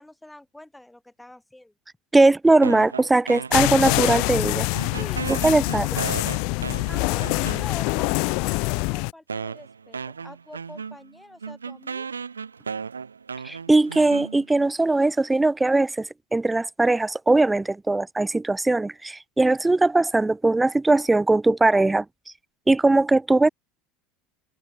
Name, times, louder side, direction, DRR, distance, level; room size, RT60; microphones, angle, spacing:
voice 1, 0.0-1.7 5.0-5.2 5.6-6.3 6.9-12.1, left 1 dB, 5° left, 5.3 m, -45 dB
voice 2, 2.1-4.7 5.3-5.9 13.4-22.1 22.7-23.5, right 2 dB, 10° right, 0.5 m, -20 dB
sound 1, 2.6-4.5 4.7-8.0 8.7-8.8 9.3-14.7, right 5 dB, 80° right, 3.9 m, -35 dB
sound 2, 3.5-9.1, left 34 dB, 55° left, 1.1 m, -25 dB
figure-of-eight pair, 70°, 0 cm